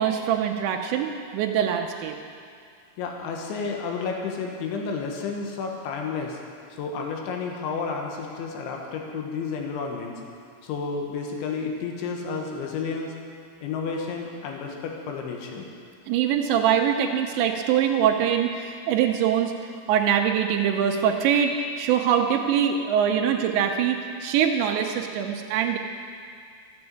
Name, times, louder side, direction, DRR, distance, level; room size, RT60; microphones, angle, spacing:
voice 1, 0.0-2.2 16.1-19.5 19.9-25.8, right 8 dB, 85° right, 3 dB, 3.0 m, -23 dB
voice 2, 3.0-6.4 6.7-10.2 10.6-13.2 13.6-15.7, left 5 dB, 90° left, 1 dB, 3.7 m, -31 dB
13.5 x 8.7 x 7.6 m, 2.2 s
omnidirectional pair, 5.2 m